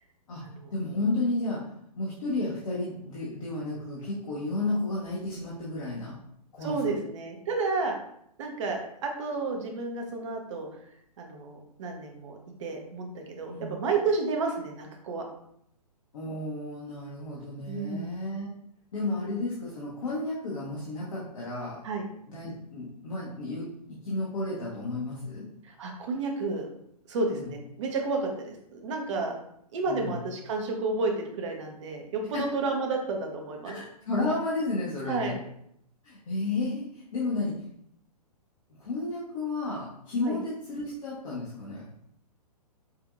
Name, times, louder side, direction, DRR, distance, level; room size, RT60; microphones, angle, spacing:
voice 1, 0.7-1.6 2.0-6.2 6.5-6.8 13.5-13.8 16.1-18.5 18.9-21.8 22.3-25.5 27.3-27.5 29.9-30.2 32.3-32.5 33.6-35.4 36.0-37.6 38.8-41.9, left 2 dB, 55° left, -7 dB, 1.3 m, -32 dB
voice 2, 6.6-8.0 8.4-10.7 11.2-15.2 17.7-18.1 21.8-22.0 25.6-26.7 27.1-29.4 29.7-33.8 35.1-35.4 40.2-40.4, right 3 dB, 45° right, 2 dB, 0.9 m, -31 dB
5.7 x 2.7 x 2.5 m, 0.73 s
figure-of-eight pair, 120°, 21 cm